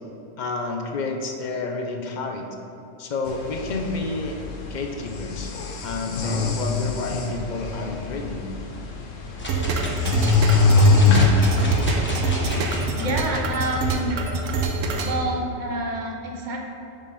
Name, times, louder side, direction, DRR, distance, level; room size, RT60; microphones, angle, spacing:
voice 1, 0.4-2.5 3.0-4.4 4.7-5.5 5.8-8.4, left 3 dB, 55° left, 3 dB, 0.5 m, -30 dB
sound 1, 3.3-12.6, left 3 dB, 90° left, 1.1 m, -23 dB
sound 2, 9.4-13.0 13.6-13.7, equal, 10° left, 0.8 m, -33 dB
sound 3, 9.5-15.2, right 3 dB, 90° right, 1.0 m, -26 dB
voice 2, 12.9-14.2 15.0-16.6, right 1 dB, 45° right, 1 dB, 0.8 m, -28 dB
5.3 x 5.0 x 5.4 m, 2.8 s
omnidirectional pair, 1.3 m